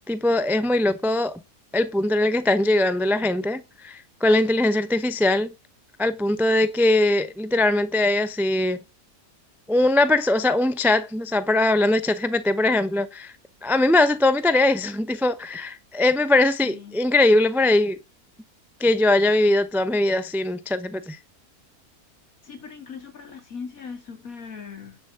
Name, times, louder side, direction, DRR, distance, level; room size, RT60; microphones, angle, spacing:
voice 1, 0.1-1.4 1.7-5.5 6.0-8.8 9.7-13.3 13.6-18.0 18.8-21.2, left 2 dB, ahead, 0.5 m, -21 dB
voice 2, 16.6-17.0 22.4-25.0, left 5 dB, 65° left, 3.0 m, -39 dB
9.9 x 7.1 x 6.5 m
omnidirectional pair, 1.6 m